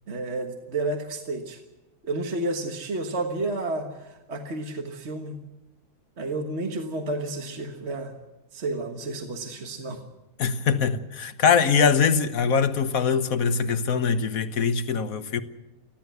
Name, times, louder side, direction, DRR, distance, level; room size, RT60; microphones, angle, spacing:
voice 1, 0.1-1.6 2.0-5.4 6.2-8.1 8.5-10.0, right 2 dB, 45° right, 1.7 m, -31 dB
voice 2, 10.4-15.4, left 6 dB, 65° left, 1.5 m, -22 dB
29.5 x 11.5 x 8.1 m
omnidirectional pair, 1.6 m